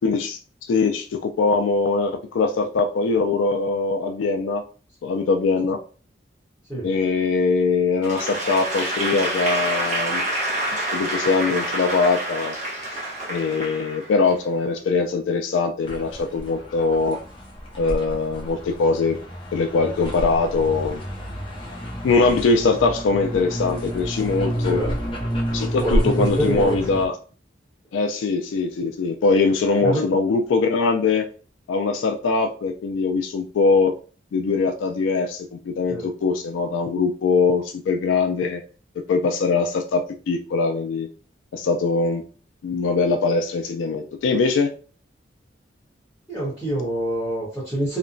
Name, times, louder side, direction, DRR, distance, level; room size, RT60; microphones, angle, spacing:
voice 1, 0.0-0.4 0.7-4.6 5.0-5.8 6.8-10.2 10.9-12.6 13.3-17.2 17.8-19.2 19.5-21.0 22.0-24.8 25.5-27.2 27.9-31.3 31.7-33.9 34.3-38.6 39.1-40.0 40.3-41.1 41.5-42.2 42.6-44.7, left 4 dB, 80° left, 4 dB, 0.3 m, -22 dB
Applause / Crowd, 8.0-14.4, right 1 dB, 40° right, 0.9 m, -27 dB
sound 1, 15.8-27.1, equal, 25° left, 0.5 m, -29 dB
voice 2, 25.8-26.8 29.8-30.0 35.9-36.0 46.3-48.0, right 1 dB, ahead, -9 dB, 1.1 m, -25 dB
2.8 x 2.1 x 2.5 m, 0.39 s
head